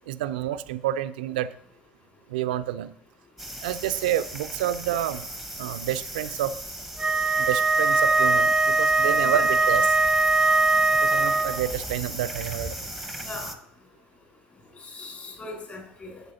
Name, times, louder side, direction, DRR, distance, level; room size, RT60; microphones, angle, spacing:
voice 1, 0.1-1.5 2.3-2.9 3.6-5.3 5.6-6.6 7.4-9.9 10.9-12.8, right 12 dB, 70° right, 14 dB, 0.4 m, -29 dB
sound 1, 3.4-13.5, right 1 dB, 5° left, 1.0 m, -37 dB
Wind instrument woodwind instrument, 7.0-11.7, right 3 dB, 15° right, 0.5 m, -21 dB
voice 2, 9.1-9.4 13.2-13.5 14.8-16.2, left 2 dB, 35° left, 0 dB, 4.3 m, -39 dB
12.0 x 7.9 x 2.8 m, 0.72 s
figure-of-eight pair, 65°, 5 cm